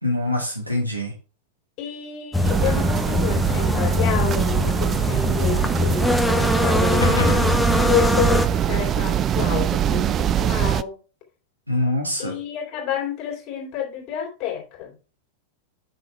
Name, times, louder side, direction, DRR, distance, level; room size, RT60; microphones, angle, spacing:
voice 1, 0.0-1.1 11.7-12.3, left 1 dB, 90° right, 2.5 m, -24 dB
voice 2, 1.8-7.1 7.9-11.0 12.2-15.0, left 9 dB, 40° left, 2.7 m, -29 dB
sound 1, 2.3-8.5, left 2 dB, 5° left, 0.9 m, -22 dB
sound 2, 2.4-10.8, right 10 dB, 30° right, 0.3 m, -23 dB
sound 3, 7.0-9.5, left 2 dB, 70° left, 1.4 m, -29 dB
6.3 x 5.9 x 4.5 m
figure-of-eight pair, 90°, 0 cm